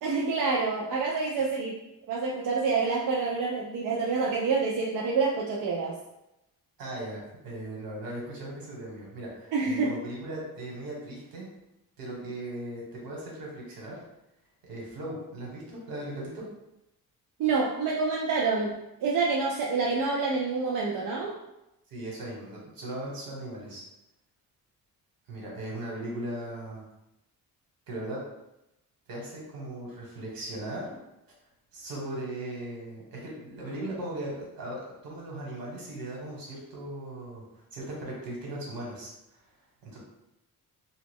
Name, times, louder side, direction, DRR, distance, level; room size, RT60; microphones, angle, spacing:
voice 1, 0.0-1.8 2.1-6.0 9.5-9.9 17.4-18.8 19.0-21.3, right 4 dB, 65° right, -2 dB, 0.5 m, -27 dB
voice 2, 6.8-11.4 12.0-14.0 14.7-16.4 21.9-23.8 25.3-26.8 27.9-28.2 29.1-30.9 31.7-37.4 37.7-39.1 39.8-40.0, right 1 dB, 85° right, -3 dB, 1.3 m, -38 dB
3.0 x 2.4 x 3.5 m, 0.89 s
cardioid pair, 145°, 34 cm